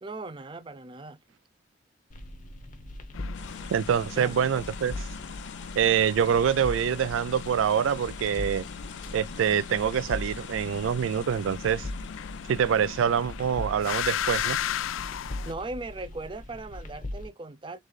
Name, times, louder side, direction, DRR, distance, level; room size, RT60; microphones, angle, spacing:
voice 1, 0.0-1.2 4.2-4.4 15.4-17.8, right 2 dB, 25° right, 0.4 m, -38 dB
sound 1, 2.1-17.3, left 1 dB, 40° left, 0.9 m, -40 dB
sound 2, 3.1-15.5, left 10 dB, 90° left, 0.4 m, -37 dB
sound 3, 3.3-15.9, left 6 dB, 65° left, 1.3 m, -49 dB
voice 2, 3.7-5.0 5.8-8.6 9.1-11.9 12.5-14.6, right 8 dB, 85° right, 0.3 m, -25 dB
4.0 x 3.2 x 3.1 m
head